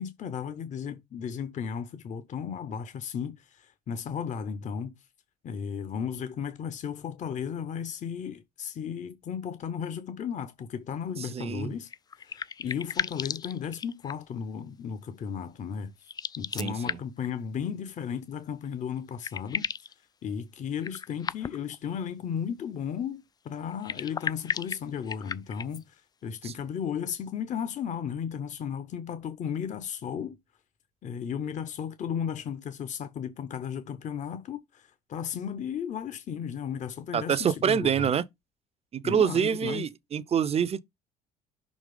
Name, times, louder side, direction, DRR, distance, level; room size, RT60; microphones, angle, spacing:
voice 1, 0.0-4.9 5.4-11.9 12.2-16.1 16.4-19.7 20.2-30.4 31.0-38.1 39.0-39.9, left 7 dB, 40° left, 0.8 m, -35 dB
voice 2, 11.2-11.7 16.6-17.0 26.4-26.5 37.1-38.2 38.9-40.8, right 8 dB, 30° right, 0.6 m, -26 dB
sound 1, 11.9-14.4 16.0-17.3 18.6-18.7 19.0-19.9 20.8-21.8 23.7-25.8, left 6 dB, 20° left, 0.4 m, -35 dB
6.4 x 3.1 x 5.1 m
figure-of-eight pair, 55°, 20 cm